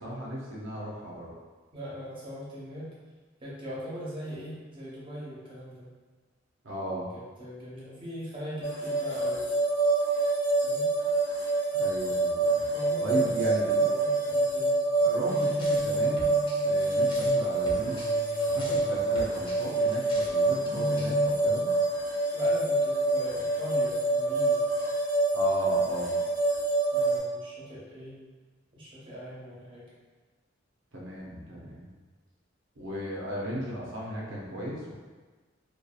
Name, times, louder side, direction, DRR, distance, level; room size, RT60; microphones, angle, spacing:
voice 1, 0.0-1.3 6.6-7.1 11.7-12.7 13.0-13.8 15.0-16.3 16.6-18.0 18.5-21.7 25.3-26.2 30.9-31.9 32.8-34.9, equal, 85° right, -4 dB, 0.6 m, -36 dB
voice 2, 1.7-2.9 3.4-5.9 7.1-9.4 10.6-10.9 12.7-14.8 22.3-24.6 26.9-28.2 28.7-29.8, equal, 25° right, -8 dB, 0.8 m, -40 dB
sound 1, 8.6-27.2, right 2 dB, 70° left, 1.3 m, -26 dB
sound 2, 15.3-21.3, equal, 30° left, 0.5 m, -39 dB
2.7 x 2.3 x 2.3 m, 1.4 s
head